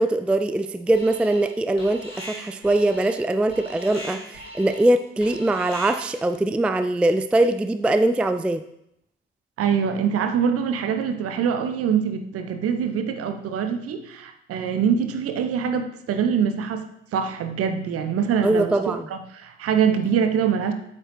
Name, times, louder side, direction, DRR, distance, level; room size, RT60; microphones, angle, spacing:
voice 1, 0.0-8.6 18.4-19.1, right 2 dB, 5° right, 9 dB, 0.3 m, -22 dB
Alarm, 0.9-1.5 1.8-6.2, right 1 dB, 90° left, 1.8 m, -40 dB
voice 2, 9.6-16.9 17.1-18.7 19.1-20.7, right 7 dB, 50° right, 8 dB, 0.9 m, -24 dB
8.5 x 7.5 x 3.2 m, 0.76 s
figure-of-eight pair, 45°, 29 cm